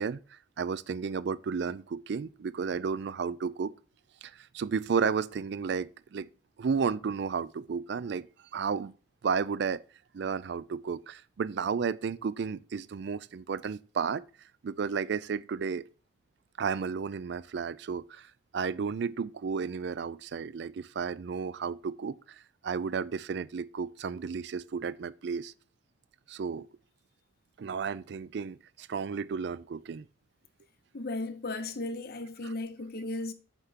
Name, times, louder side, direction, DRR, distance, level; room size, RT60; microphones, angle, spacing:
voice 1, 0.0-3.7 4.2-6.3 6.6-8.3 8.5-8.9 9.2-9.8 10.1-14.2 14.6-15.8 16.6-25.5 26.3-26.7 27.6-30.0 32.4-32.5, right 5 dB, 55° right, 0.3 m, -33 dB
voice 2, 30.9-33.3, left 2 dB, 50° left, 0.7 m, -35 dB
8.1 x 5.8 x 2.9 m
head